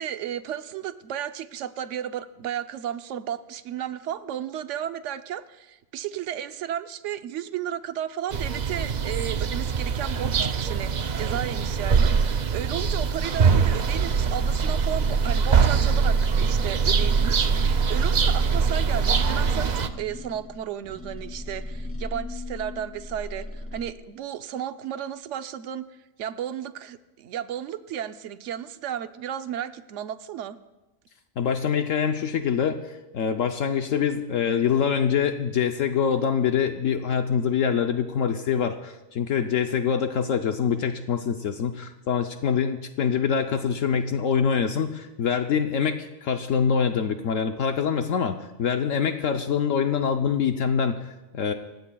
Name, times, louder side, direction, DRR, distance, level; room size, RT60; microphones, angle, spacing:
voice 1, 0.0-25.9 26.2-30.6, right 10 dB, 65° right, 10 dB, 1.0 m, -33 dB
sound 1, 8.3-19.9, right 5 dB, 50° right, 0.5 m, -23 dB
sound 2, 18.1-23.9, left 2 dB, 15° left, 0.6 m, -38 dB
voice 2, 31.4-51.5, left 7 dB, 70° left, 6 dB, 1.1 m, -25 dB
29.0 x 16.0 x 2.3 m, 1.1 s
omnidirectional pair, 1.4 m